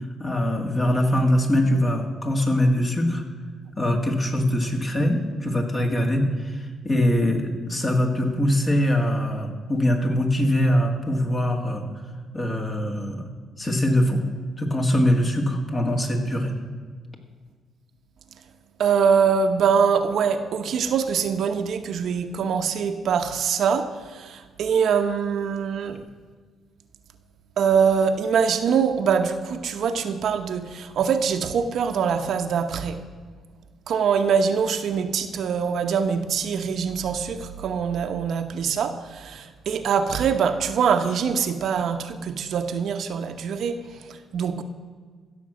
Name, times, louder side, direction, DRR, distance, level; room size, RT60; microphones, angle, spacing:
voice 1, 0.2-3.2 3.8-11.8 12.3-13.2 13.6-14.2 14.6-16.5, equal, 30° left, 3 dB, 2.1 m, -22 dB
voice 2, 18.8-26.0 27.6-33.0 33.9-44.6, right 6 dB, 65° right, 7 dB, 0.9 m, -23 dB
15.5 x 6.8 x 6.2 m, 1.5 s
cardioid pair, 90°, 0 cm